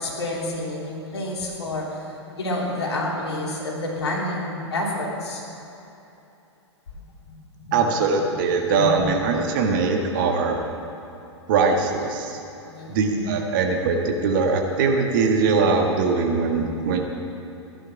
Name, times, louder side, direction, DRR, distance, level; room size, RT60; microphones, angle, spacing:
voice 1, 0.0-2.1 2.4-5.4 7.3-7.4 7.6-7.8 8.2-8.4 8.8-9.1 9.4-9.5 12.6-13.0, left 1 dB, 65° left, -3 dB, 3.3 m, -29 dB
voice 2, 7.7-10.5 11.5-12.4 12.9-17.0, right 4 dB, 45° right, 2 dB, 1.7 m, -21 dB
15.5 x 11.0 x 6.0 m, 2.9 s
figure-of-eight pair, 105°, 15 cm